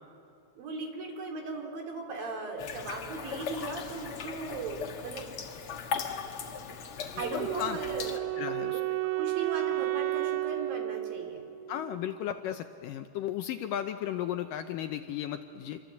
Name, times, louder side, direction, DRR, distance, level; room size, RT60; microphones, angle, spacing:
voice 1, 0.6-5.3 7.2-8.3 8.7-8.9 9.2-11.5, right 3 dB, 65° right, 2 dB, 4.8 m, -37 dB
sound 1, 2.6-8.2, left 6 dB, 55° left, 1.5 m, -38 dB
voice 2, 7.2-7.8 8.4-8.8 11.7-15.8, left 11 dB, 75° left, 7 dB, 2.1 m, -35 dB
Wind instrument woodwind instrument, 7.2-12.2, right 17 dB, 90° right, 1.7 m, -33 dB
28.0 x 24.0 x 8.3 m, 2.5 s
omnidirectional pair, 4.5 m